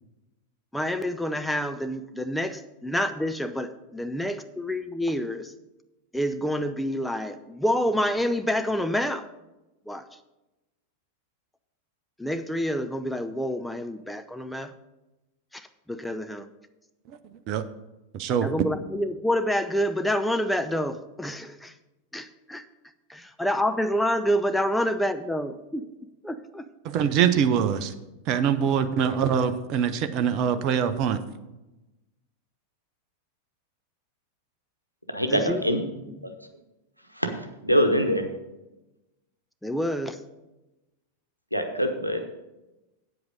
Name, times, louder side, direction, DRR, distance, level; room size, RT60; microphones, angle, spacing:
voice 1, 0.7-5.5 6.1-9.3 9.9-10.0 12.2-14.7 15.5-16.5 18.4-21.7 22.1-22.6 23.1-25.9 26.2-26.7 35.3-35.8 36.1-36.2 39.6-40.2, equal, 5° left, 8 dB, 0.5 m, -28 dB
voice 2, 18.1-18.5 26.9-27.9 28.3-31.2, right 8 dB, 40° right, 10 dB, 0.7 m, -23 dB
voice 3, 35.1-35.8 37.2-38.3 41.5-42.2, equal, 90° right, 6 dB, 1.0 m, -24 dB
8.7 x 7.8 x 5.2 m, 1.0 s
figure-of-eight pair, 90°, 0 cm